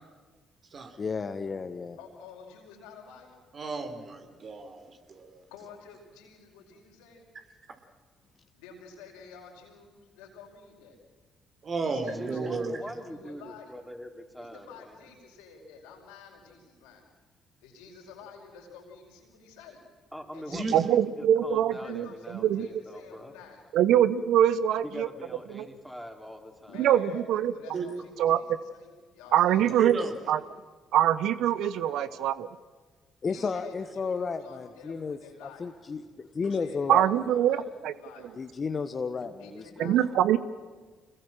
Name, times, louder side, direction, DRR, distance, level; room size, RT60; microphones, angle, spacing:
voice 1, 1.0-2.0 33.2-37.0 38.4-40.0, left 5 dB, 40° left, 9 dB, 1.4 m, -33 dB
voice 2, 2.0-3.4 5.5-7.3 8.5-11.0 11.8-13.8 14.4-17.1 17.6-19.8 20.3-20.7 21.7-23.6 26.6-30.5 31.6-32.1 33.2-35.7 36.4-38.4 39.4-40.0, left 5 dB, 80° left, 1 dB, 5.0 m, -50 dB
voice 3, 3.5-5.4 11.6-12.8 20.5-20.9 27.7-27.9 29.8-30.1, right 4 dB, 50° right, 6 dB, 3.7 m, -33 dB
voice 4, 12.1-15.0 20.1-20.8 21.2-23.3 24.8-26.9, equal, ahead, 4 dB, 4.2 m, -43 dB
voice 5, 20.7-22.1 22.3-22.7 23.7-25.1 25.5-25.7 26.8-27.5 28.2-28.4 29.3-30.0 30.3-30.4 30.9-32.5 36.9-37.9 39.8-40.4, right 11 dB, 70° right, 16 dB, 0.8 m, -23 dB
26.0 x 21.0 x 7.5 m, 1.4 s
hypercardioid pair, 50°, 0 cm